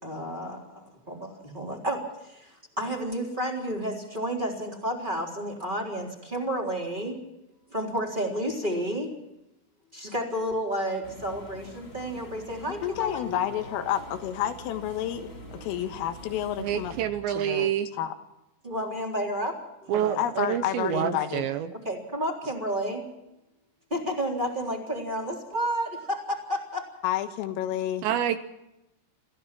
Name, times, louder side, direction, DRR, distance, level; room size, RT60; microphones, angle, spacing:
voice 1, 0.0-7.2 7.7-9.1 9.9-13.4 18.6-19.5 19.8-20.2 21.8-23.1 23.9-26.8, equal, 10° right, 0 dB, 3.0 m, -31 dB
sound 1, 11.0-17.1, left 1 dB, 25° left, 1.2 m, -45 dB
voice 2, 12.7-17.0 17.4-18.1 20.2-21.4 27.0-28.1, left 11 dB, 90° left, 7 dB, 4.1 m, -30 dB
voice 3, 16.6-17.9 19.9-21.7 28.0-28.4, right 10 dB, 75° right, 10 dB, 2.9 m, -27 dB
28.5 x 15.5 x 6.0 m, 0.91 s
omnidirectional pair, 5.7 m